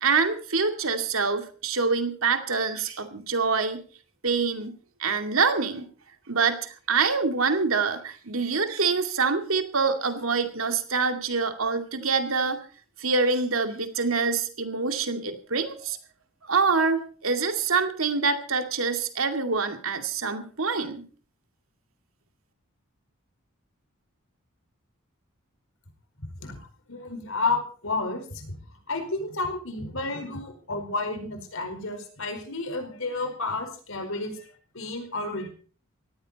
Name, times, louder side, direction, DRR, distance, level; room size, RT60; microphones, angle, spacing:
voice 1, 0.0-3.8 4.2-5.8 6.3-12.6 13.0-16.0 16.5-21.1, right 4 dB, 75° right, 6 dB, 2.4 m, -25 dB
voice 2, 26.2-28.5 28.9-34.5 34.7-35.5, left 3 dB, 70° left, 6 dB, 4.8 m, -31 dB
18.5 x 15.0 x 4.2 m, 0.41 s
head